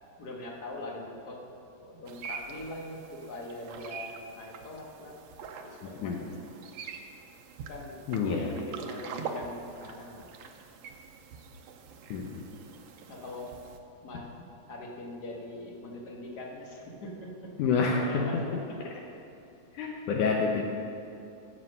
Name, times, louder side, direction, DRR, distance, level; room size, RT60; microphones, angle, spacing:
voice 1, 0.2-1.5 1.8-5.1 5.6-6.4 7.7-8.0 8.3-10.3 13.1-13.6 14.0-17.5 17.9-18.8, left 1 dB, 40° left, -1 dB, 1.5 m, -42 dB
sound 1, 2.1-13.8, right 5 dB, 70° right, 1.7 m, -44 dB
voice 2, 8.1-8.5 12.1-12.5 17.6-18.4 19.7-20.6, left 5 dB, 70° left, 0 dB, 2.3 m, -28 dB
15.0 x 7.6 x 6.6 m, 2.7 s
omnidirectional pair, 3.9 m